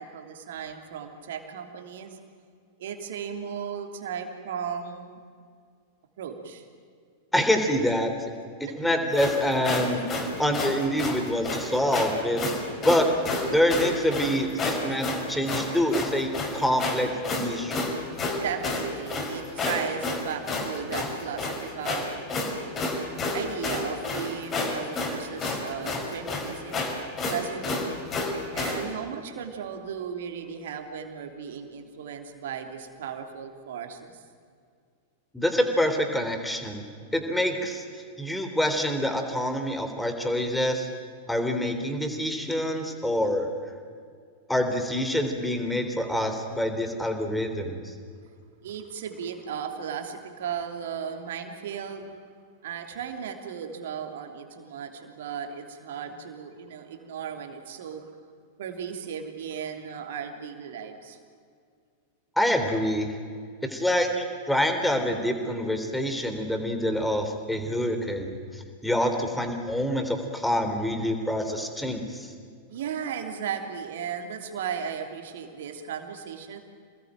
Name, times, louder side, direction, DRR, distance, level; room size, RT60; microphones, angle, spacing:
voice 1, 0.0-2.2 2.8-5.2 6.2-6.6 8.7-8.8 10.2-10.4 14.2-14.4 18.4-22.2 23.3-26.9 27.3-27.9 28.5-34.2 48.6-52.1 52.6-58.0 58.6-61.2 69.1-69.3 72.7-76.6, right 7 dB, 60° right, 5 dB, 3.1 m, -36 dB
voice 2, 7.3-8.3 8.6-12.4 12.8-13.1 13.4-17.9 35.3-36.9 37.1-40.9 41.3-43.5 44.5-47.9 62.4-63.1 63.6-72.3, equal, 5° left, 6 dB, 3.6 m, -26 dB
sound 1, 9.1-28.8, left 3 dB, 25° left, 5.3 m, -30 dB
28.0 x 20.0 x 9.1 m, 2.2 s
figure-of-eight pair, 90°, 0 cm